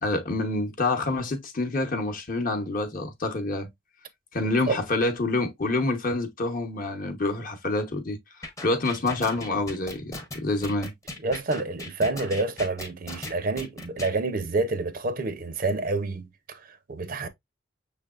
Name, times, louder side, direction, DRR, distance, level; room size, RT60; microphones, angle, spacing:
voice 1, 0.0-3.7 4.3-8.2 8.6-10.9, left 2 dB, 45° left, 0.9 m, -27 dB
sound 1, 8.4-14.1, left 2 dB, 15° left, 0.8 m, -38 dB
voice 2, 11.2-17.3, right 3 dB, 45° right, 0.6 m, -28 dB
6.1 x 3.3 x 2.4 m
head